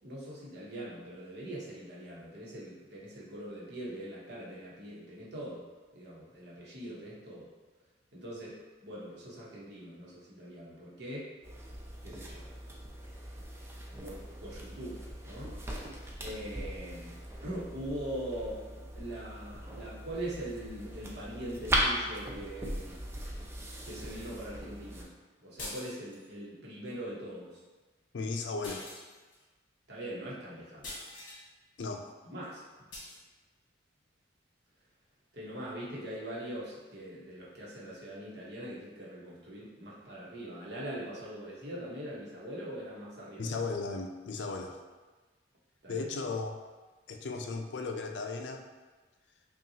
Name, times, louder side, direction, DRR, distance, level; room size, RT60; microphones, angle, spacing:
voice 1, 0.0-5.6 5.9-7.5 8.1-11.3 12.0-12.5 14.0-15.5 16.2-22.9 23.8-25.1 25.4-27.6 29.9-30.9 32.2-32.6 35.3-43.5 45.8-46.1, right 1 dB, 60° right, -6 dB, 1.0 m, -42 dB
sound 1, 11.4-25.0, equal, 15° right, 0.4 m, -38 dB
sound 2, 25.6-26.3 28.6-29.4 30.8-31.4 32.9-33.2, left 2 dB, 45° left, 1.2 m, -44 dB
voice 2, 28.1-28.9 31.8-32.1 43.4-44.8 45.9-46.5 47.1-48.6, left 3 dB, 65° left, 4 dB, 0.4 m, -36 dB
5.5 x 2.4 x 2.7 m, 1.3 s
head